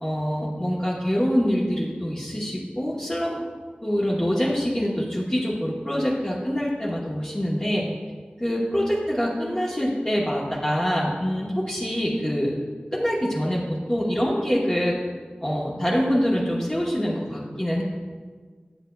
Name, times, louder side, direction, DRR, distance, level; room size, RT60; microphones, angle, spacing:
voice 1, 0.0-3.4 3.8-7.8 8.4-12.6 12.9-14.9 15.4-17.8, equal, 20° left, -6 dB, 1.1 m, -25 dB
9.9 x 7.4 x 2.3 m, 1.5 s
wide cardioid pair, 50°, 3 cm